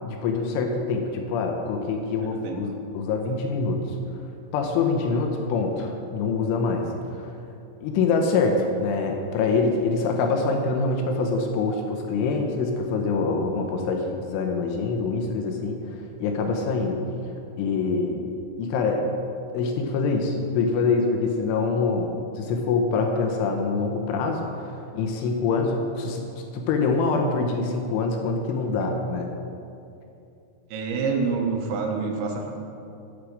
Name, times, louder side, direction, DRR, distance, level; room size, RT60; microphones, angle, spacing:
voice 1, 0.0-3.8 4.5-6.8 7.1-7.3 7.8-17.0 17.6-18.3 18.6-19.1 19.5-26.3 26.5-29.3, left 4 dB, 80° left, 3 dB, 3.1 m, -25 dB
voice 2, 2.2-2.6 30.7-32.5, right 4 dB, 80° right, 2 dB, 3.8 m, -27 dB
8.5 x 8.2 x 7.4 m, 2.7 s
omnidirectional pair, 5.9 m